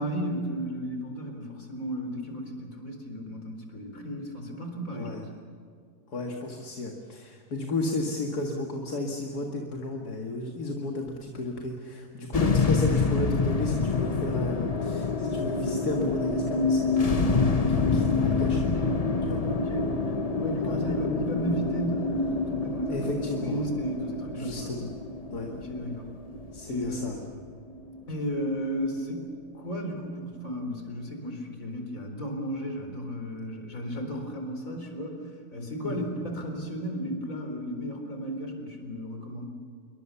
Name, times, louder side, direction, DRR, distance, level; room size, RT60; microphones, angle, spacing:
voice 1, 0.0-5.3 19.5-23.0 23.3-24.7 25.4-26.1 26.6-27.0 28.1-29.3 29.5-35.2 35.5-39.5, equal, 55° left, 4 dB, 4.5 m, -34 dB
voice 2, 6.1-18.6 19.3-19.4 20.6-20.9 22.9-23.7 24.3-24.9 25.3-25.5 26.5-27.2 35.8-36.1, left 2 dB, 70° left, 2 dB, 2.4 m, -33 dB
sound 1, 12.3-28.7, left 4 dB, 30° left, 0.9 m, -27 dB
27.5 x 23.0 x 7.0 m, 2.3 s
omnidirectional pair, 1.7 m